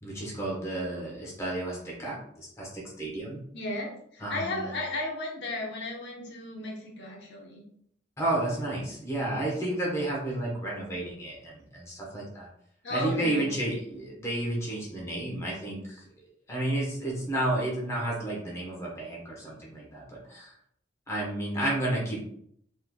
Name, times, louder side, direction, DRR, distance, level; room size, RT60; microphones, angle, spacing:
voice 1, 0.0-3.4 4.2-4.6 8.2-12.5 12.9-16.0 16.5-20.5 21.1-22.2, right 1 dB, 15° left, -4 dB, 1.0 m, -31 dB
voice 2, 3.5-7.6 12.8-13.6, left 2 dB, 70° left, -2 dB, 0.9 m, -35 dB
3.7 x 3.2 x 2.3 m, 0.67 s
head